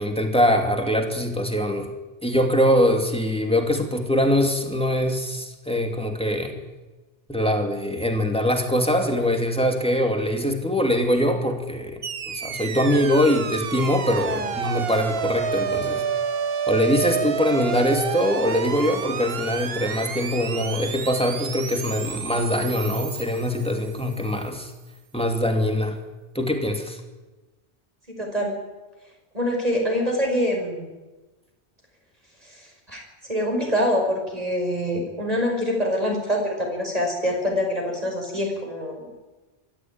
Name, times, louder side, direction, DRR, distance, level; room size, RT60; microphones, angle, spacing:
voice 1, 0.0-1.9 2.2-6.6 7.3-16.0 16.7-24.7 25.1-26.0 26.3-27.0, equal, 5° left, 4 dB, 2.6 m, -23 dB
sound 1, 12.0-24.3, right 7 dB, 60° right, 1.2 m, -30 dB
voice 2, 28.2-28.6 29.3-30.9 32.4-39.1, equal, 35° right, 1 dB, 5.9 m, -25 dB
23.5 x 14.0 x 9.1 m, 1.2 s
omnidirectional pair, 1.1 m